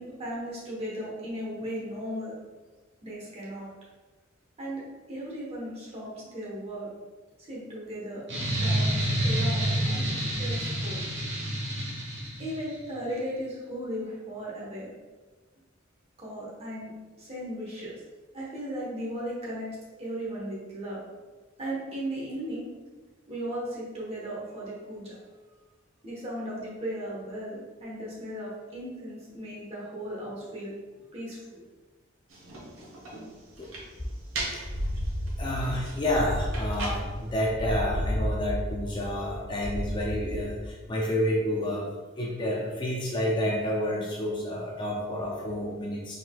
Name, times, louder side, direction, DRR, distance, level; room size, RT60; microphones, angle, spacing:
voice 1, 0.0-2.3 3.0-3.7 4.6-4.8 5.1-6.9 7.4-8.2 8.6-8.9 9.2-11.0 12.4-14.9 16.2-16.9 17.2-17.9 18.3-19.7 20.0-21.0 21.6-22.7 23.3-25.2 26.0-30.7 31.1-31.6, equal, 30° right, -6 dB, 1.2 m, -36 dB
sound 1, 8.3-12.7, right 1 dB, 60° right, 1.3 m, -28 dB
sound 2, 32.3-37.3, right 2 dB, 75° right, 1.0 m, -40 dB
sound 3, 34.0-34.1 34.5-40.7, equal, 45° left, 0.8 m, -33 dB
voice 2, 35.4-41.9 42.1-46.2, left 1 dB, 25° left, -2 dB, 0.4 m, -29 dB
4.3 x 3.8 x 2.4 m, 1.3 s
head